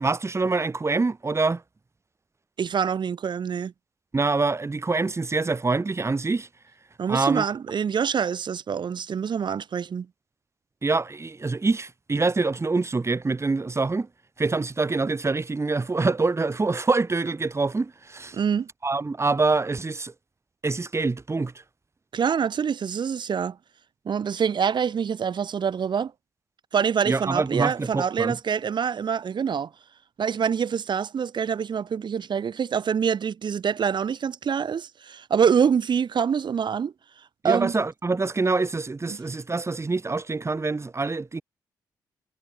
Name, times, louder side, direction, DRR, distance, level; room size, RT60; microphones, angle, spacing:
voice 1, 0.0-1.6 4.1-6.5 7.1-7.5 10.8-14.1 14.4-18.4 18.8-20.1 20.6-21.5 27.1-28.4 37.4-41.4, right 3 dB, 30° right, 1.7 m, -25 dB
voice 2, 2.6-3.7 7.0-10.1 18.3-18.7 22.1-23.6 24.0-26.1 26.7-29.7 30.2-36.9 37.4-37.7 39.1-39.2, right 7 dB, 55° right, 1.5 m, -25 dB
hypercardioid pair, 40°, 9 cm